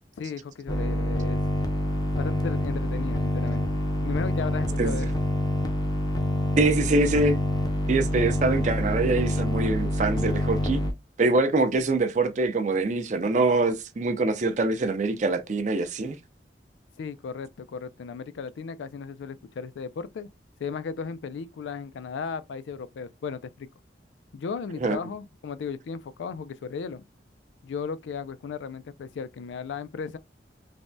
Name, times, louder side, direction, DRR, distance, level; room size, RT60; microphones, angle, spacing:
voice 1, 0.2-1.4 2.2-5.1 17.0-20.3 20.6-23.7 24.3-27.0 27.6-30.2, left 5 dB, 90° left, 0.3 m, -35 dB
sound 1, 0.7-10.9, left 1 dB, 25° left, 0.5 m, -26 dB
voice 2, 6.6-7.4 7.9-10.8 11.2-16.2 24.8-25.0, right 3 dB, 40° right, 0.4 m, -24 dB
3.3 x 2.1 x 2.6 m
head